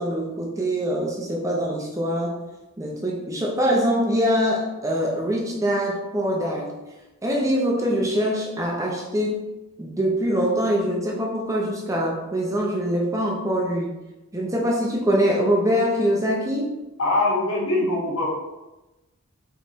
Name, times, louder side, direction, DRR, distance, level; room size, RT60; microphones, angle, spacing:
voice 1, 0.0-2.4 2.8-6.8 7.2-9.4 9.8-13.9 14.3-16.7, equal, 15° right, -1 dB, 0.6 m, -23 dB
voice 2, 17.0-18.3, left 2 dB, 90° left, -3 dB, 1.2 m, -22 dB
4.2 x 3.3 x 3.0 m, 1.1 s
head